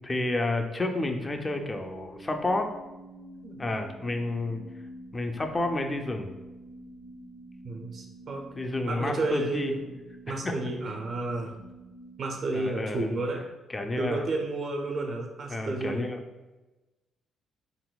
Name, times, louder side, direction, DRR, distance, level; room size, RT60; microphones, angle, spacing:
voice 1, 0.0-2.7 3.6-4.6 5.1-6.4 8.5-9.8 10.3-10.6 12.5-13.1 13.7-14.2 15.5-16.2, left 2 dB, 25° left, 5 dB, 0.3 m, -30 dB
sound 1, 1.0-13.2, right 1 dB, 55° left, 0.7 m, -48 dB
voice 2, 7.6-8.5 8.9-9.8 10.3-11.5 12.2-13.4 14.0-16.1, right 2 dB, 55° right, 1 dB, 0.4 m, -31 dB
3.8 x 2.1 x 2.3 m, 1.1 s
cardioid pair, 90°, 0 cm